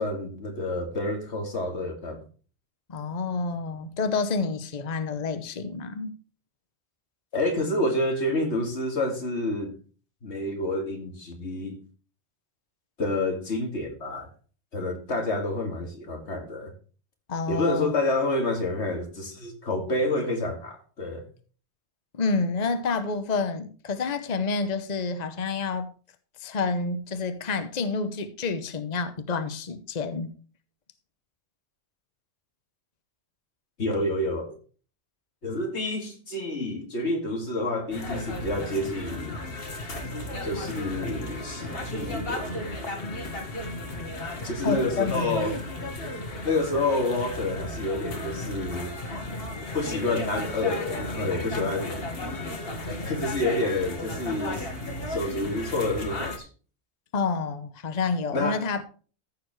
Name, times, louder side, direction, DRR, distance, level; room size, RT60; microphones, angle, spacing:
voice 1, 0.0-2.2 7.3-9.8 10.2-11.8 13.0-14.3 14.7-16.7 17.5-21.2 33.8-34.6 35.4-39.4 40.4-42.8 44.4-45.7 46.4-48.9 49.7-51.9 52.8-54.7 55.1-56.5 58.3-58.7, left 2 dB, 90° left, 2.5 m, -28 dB
voice 2, 2.9-6.1 17.3-17.9 22.1-25.9 26.4-30.3 44.6-45.5 57.1-58.8, left 4 dB, 40° left, 1.0 m, -29 dB
sound 1, 37.9-56.4, left 1 dB, 60° left, 1.9 m, -34 dB
14.5 x 6.9 x 3.2 m
omnidirectional pair, 1.1 m